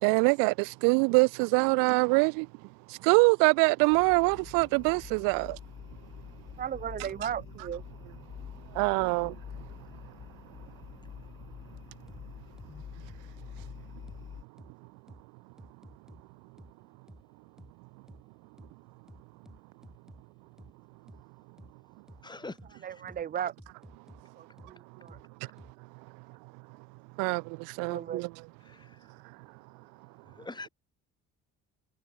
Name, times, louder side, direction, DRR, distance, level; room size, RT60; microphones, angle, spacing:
voice 1, 0.0-2.5 2.9-5.6 8.7-9.9 24.6-24.7 25.4-25.5 27.2-28.3 29.2-29.4, right 34 dB, 90° right, 0.5 m, -25 dB
sound 1, 3.9-14.4, left 8 dB, 40° left, 1.0 m, -47 dB
voice 2, 6.6-7.8 22.8-23.5 24.4-25.2 27.8-28.2, right 9 dB, 30° right, 0.5 m, -36 dB
sound 2, 12.1-12.2 12.6-12.7 13.1-13.2 13.6-13.7 14.1-14.2 14.6-14.7 15.1-15.2 15.6-16.2 16.6-16.7 17.1-17.2 17.6-17.7 18.1-18.2 18.6-18.7 19.1-20.2 20.6-20.7 21.1-21.2 21.6-21.7 22.1-22.2 22.6-22.7 23.1-23.2 23.6-24.2 24.6-24.7 25.1-25.2 25.6-25.7, equal, ahead, 2.6 m, -51 dB
voice 3, 22.2-23.0 28.6-29.1 30.2-30.7, left 3 dB, 15° left, 1.0 m, -45 dB
supercardioid pair, 80°, 32 cm